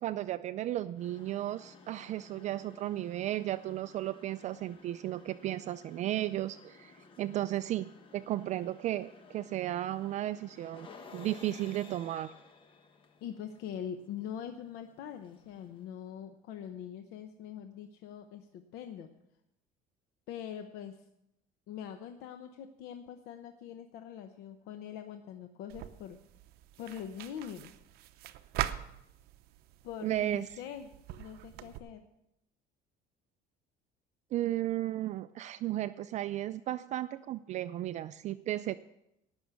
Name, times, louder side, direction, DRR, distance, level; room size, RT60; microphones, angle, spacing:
voice 1, 0.0-10.9 11.1-12.3 30.0-30.5 34.3-38.8, right 14 dB, 45° right, 12 dB, 0.4 m, -34 dB
sound 1, 0.9-15.9, left 4 dB, 30° left, 1.2 m, -56 dB
voice 2, 13.2-19.1 20.3-21.0 21.7-26.2 26.8-27.7 29.8-32.0, left 9 dB, 75° left, 7 dB, 0.9 m, -43 dB
sound 2, 25.7-31.8, right 13 dB, 70° right, 0.8 m, -42 dB
18.0 x 6.2 x 7.0 m, 0.84 s
cardioid pair, 145°, 17 cm